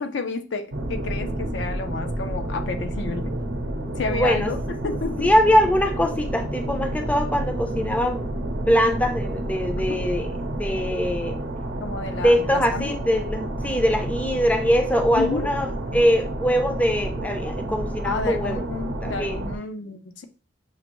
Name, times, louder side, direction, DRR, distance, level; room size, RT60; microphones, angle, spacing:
voice 1, 0.0-3.3 4.0-5.3 9.7-9.9 11.8-12.9 15.1-15.5 18.0-20.2, left 4 dB, 65° left, 7 dB, 0.5 m, -30 dB
sound 1, 0.7-19.6, right 1 dB, 70° right, 0.7 m, -30 dB
voice 2, 4.1-4.5 5.2-8.2 8.7-11.4 12.2-18.7 19.0-19.4, equal, 10° left, 4 dB, 0.5 m, -22 dB
6.4 x 2.5 x 2.9 m, 0.36 s
head